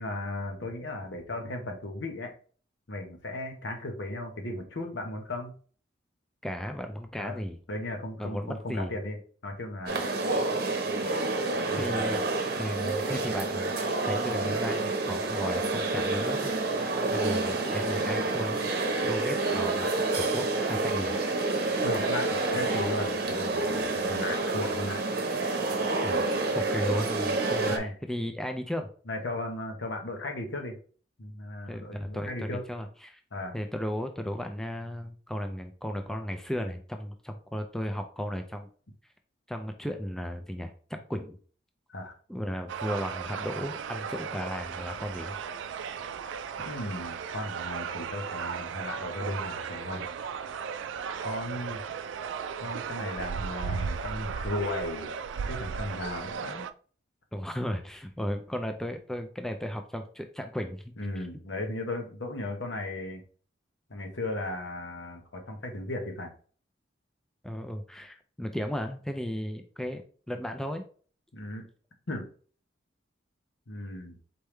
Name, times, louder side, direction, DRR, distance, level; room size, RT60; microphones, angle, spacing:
voice 1, 0.0-2.3 2.9-5.5 7.2-7.4 7.7-10.1 11.7-12.3 21.8-25.1 27.7-28.0 29.1-30.8 31.2-32.6 33.3-33.6 41.9-42.2 46.6-50.1 51.2-51.8 52.6-55.1 55.5-56.7 61.0-63.2 63.9-66.3 71.3-71.7 72.1-72.3 73.7-74.2, left 1 dB, 80° left, 3 dB, 1.1 m, -36 dB
voice 2, 6.4-7.6 8.2-8.9 11.7-13.7 14.0-18.7 19.0-21.2 26.0-27.7 28.0-28.9 31.7-33.2 33.5-38.7 39.5-41.4 42.3-45.4 57.3-60.9 67.4-70.8, equal, 5° left, 5 dB, 0.4 m, -35 dB
sound 1, 9.9-27.8, right 2 dB, 55° right, 0.8 m, -28 dB
sound 2, 42.7-56.7, right 6 dB, 85° right, 0.3 m, -36 dB
4.4 x 3.5 x 3.2 m, 0.42 s
head